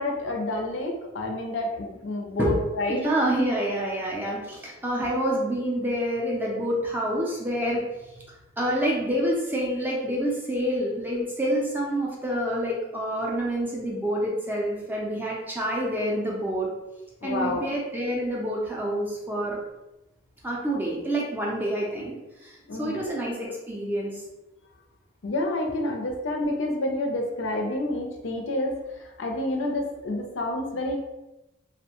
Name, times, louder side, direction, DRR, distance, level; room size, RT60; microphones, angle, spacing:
voice 1, 0.0-3.1 5.0-5.1 17.2-17.7 22.7-23.1 25.2-28.8 29.2-31.0, left 1 dB, 70° left, 1 dB, 0.5 m, -29 dB
voice 2, 2.9-7.8 8.6-16.7 17.2-19.6 20.4-22.1 22.4-24.2, equal, 10° right, -3 dB, 0.4 m, -27 dB
2.6 x 2.1 x 2.8 m, 1.0 s
head